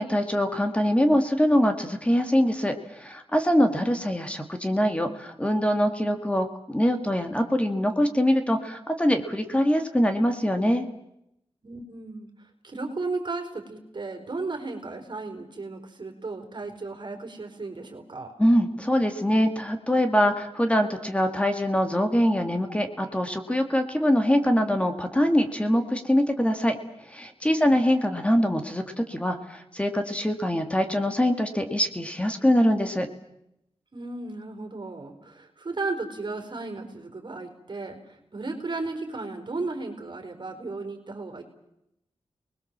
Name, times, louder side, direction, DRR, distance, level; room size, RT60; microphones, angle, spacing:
voice 1, 0.0-10.9 18.4-26.8 27.1-33.1, equal, 10° left, 6 dB, 2.0 m, -23 dB
voice 2, 11.6-12.3 12.6-18.3 27.6-27.8 33.9-41.4, right 3 dB, 50° right, 4 dB, 4.3 m, -35 dB
29.5 x 20.5 x 7.4 m, 0.81 s
wide cardioid pair, 125°, 10 cm